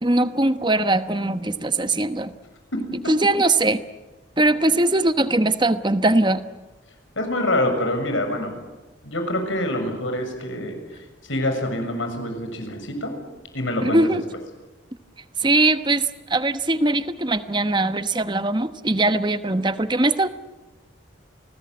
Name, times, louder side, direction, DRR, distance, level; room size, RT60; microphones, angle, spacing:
voice 1, 0.0-2.3 3.1-3.8 4.4-6.4 13.8-14.2 15.4-20.3, right 2 dB, 25° right, 11 dB, 1.1 m, -21 dB
voice 2, 2.7-3.1 7.1-8.6 9.0-10.8 11.3-13.1 13.5-14.1, left 1 dB, 80° left, 5 dB, 6.8 m, -26 dB
29.0 x 20.0 x 9.7 m, 1.2 s
head